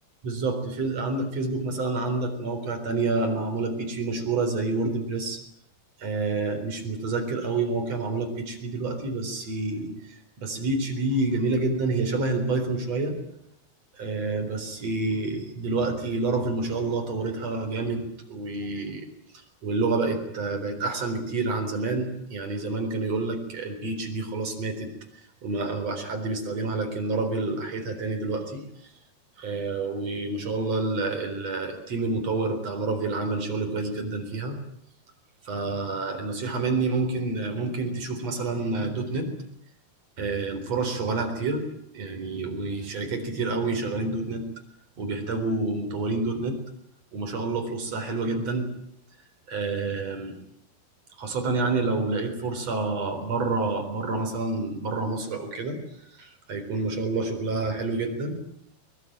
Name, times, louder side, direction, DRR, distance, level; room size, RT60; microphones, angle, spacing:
voice 1, 0.2-5.4 6.0-13.2 14.0-19.1 19.3-24.9 25.4-28.6 29.4-34.6 35.4-39.4 40.2-41.7 41.9-44.5 45.0-46.6 47.1-48.7 49.5-50.4 51.2-55.8 56.2-58.4, right 3 dB, 40° right, 5 dB, 4.9 m, -28 dB
23.0 x 22.0 x 8.9 m, 0.76 s
omnidirectional pair, 4.6 m